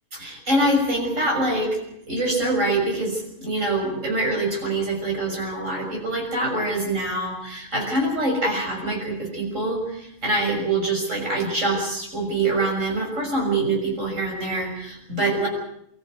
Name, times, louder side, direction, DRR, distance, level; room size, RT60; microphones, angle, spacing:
voice 1, 0.1-1.8 2.1-15.5, right 2 dB, 75° right, 1 dB, 6.9 m, -24 dB
25.0 x 14.0 x 9.4 m, 0.76 s
omnidirectional pair, 1.3 m